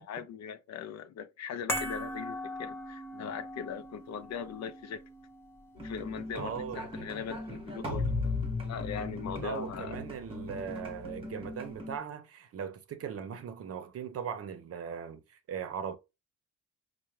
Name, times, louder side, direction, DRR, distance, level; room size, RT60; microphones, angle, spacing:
voice 1, 0.0-5.0 5.7-10.0, left 7 dB, 60° left, 0.5 m, -40 dB
sound 1, 1.7-8.1 8.4-8.5, equal, 5° left, 0.7 m, -41 dB
sound 2, 5.8-12.0, left 2 dB, 15° right, 1.1 m, -37 dB
voice 2, 6.3-6.8 9.4-16.0, right 7 dB, 50° right, 0.7 m, -39 dB
5.6 x 2.2 x 3.1 m
cardioid pair, 165°, 31 cm